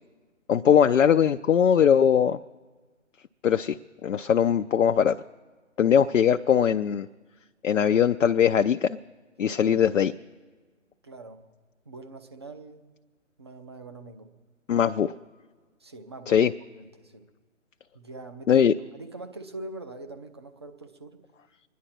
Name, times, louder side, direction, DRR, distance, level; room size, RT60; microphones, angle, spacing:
voice 1, 0.5-2.4 3.4-3.8 4.0-5.2 5.8-7.1 7.6-9.0 9.4-10.1 14.7-15.1 16.3-16.5 18.5-18.7, left 8 dB, 70° left, 8 dB, 0.5 m, -20 dB
voice 2, 11.0-11.4 11.9-12.9 13.4-14.3 15.8-16.4 16.7-17.3 17.9-21.2, right 2 dB, 20° right, 6 dB, 0.5 m, -43 dB
25.0 x 10.5 x 4.3 m, 1.4 s
figure-of-eight pair, 145°, 39 cm